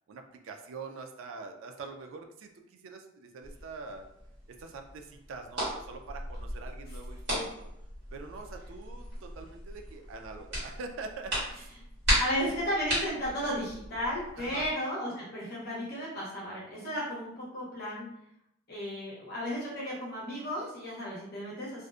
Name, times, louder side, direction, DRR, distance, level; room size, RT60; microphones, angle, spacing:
voice 1, 0.1-4.1 4.6-7.7 8.1-11.8 12.1-12.3 14.4-14.7, right 4 dB, 75° right, 4 dB, 0.3 m, -44 dB
sound 1, 3.4-14.7, equal, 55° right, 1.4 m, -36 dB
voice 2, 12.2-18.1 18.7-21.9, equal, 50° left, -6 dB, 0.7 m, -34 dB
2.6 x 2.0 x 2.3 m, 0.81 s
head